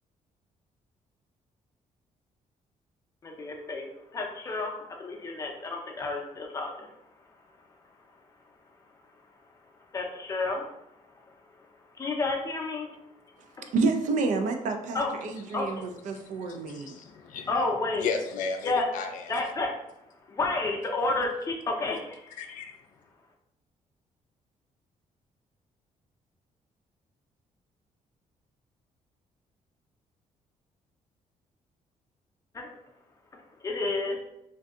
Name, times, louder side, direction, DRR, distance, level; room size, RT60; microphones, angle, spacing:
voice 1, 3.2-3.8 4.1-6.9 9.9-10.7 12.0-12.9 13.6-13.7 14.9-15.1 15.5-15.6 17.5-18.1 18.6-18.8 19.3-19.7 20.3-22.3 32.5-32.7 33.6-34.2, left 3 dB, 25° left, 1 dB, 0.5 m, -30 dB
voice 2, 13.7-17.0, right 3 dB, 75° right, 6 dB, 0.4 m, -29 dB
voice 3, 16.1-17.5 18.0-19.4 22.4-22.8, left 5 dB, 85° left, 5 dB, 0.4 m, -35 dB
2.6 x 2.3 x 3.5 m, 0.82 s
cardioid pair, 165°, 13 cm